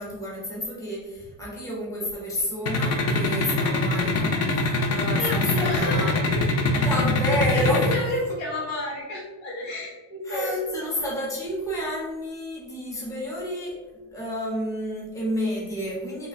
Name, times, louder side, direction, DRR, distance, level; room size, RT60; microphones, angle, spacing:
voice 1, 0.0-6.4 6.7-7.9 10.2-16.3, equal, 5° left, -6 dB, 0.8 m, -30 dB
sound 1, 2.7-8.0, left 3 dB, 35° left, 0.4 m, -23 dB
voice 2, 5.1-6.2 6.7-7.0 7.5-10.9, left 2 dB, 65° left, -3 dB, 1.3 m, -31 dB
3.1 x 2.2 x 4.1 m, 1.2 s
cardioid pair, 150°, 50 cm